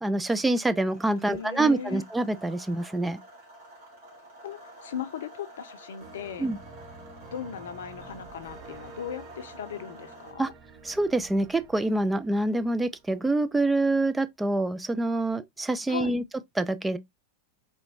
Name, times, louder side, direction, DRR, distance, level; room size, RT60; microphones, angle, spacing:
voice 1, 0.0-3.2 6.4-6.6 10.4-10.5 10.8-16.2 16.6-17.0, right 2 dB, 10° right, 0.3 m, -26 dB
sound 1, 0.8-10.3, right 1 dB, 55° right, 2.0 m, -49 dB
voice 2, 1.2-2.0 4.4-6.5 7.3-10.5 15.9-16.2, left 8 dB, 60° left, 0.5 m, -38 dB
sound 2, 6.0-13.6, right 4 dB, 40° right, 0.8 m, -49 dB
4.1 x 3.2 x 2.6 m
figure-of-eight pair, 90°, 0 cm